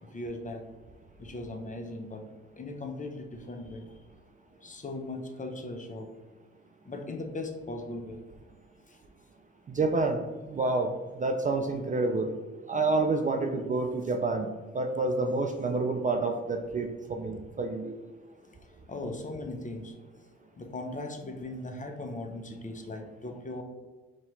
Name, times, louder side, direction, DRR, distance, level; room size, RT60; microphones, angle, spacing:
voice 1, 0.0-0.6 1.2-2.3 2.6-3.9 4.6-6.1 6.8-8.2 8.9-9.0 18.4-18.6 18.9-20.0 20.6-23.6, left 2 dB, 25° left, 4 dB, 0.7 m, -38 dB
voice 2, 9.7-12.3 12.7-14.5 14.7-18.0, right 3 dB, 25° right, 4 dB, 0.4 m, -28 dB
3.0 x 2.8 x 3.9 m, 1.3 s
hypercardioid pair, 50°, 30 cm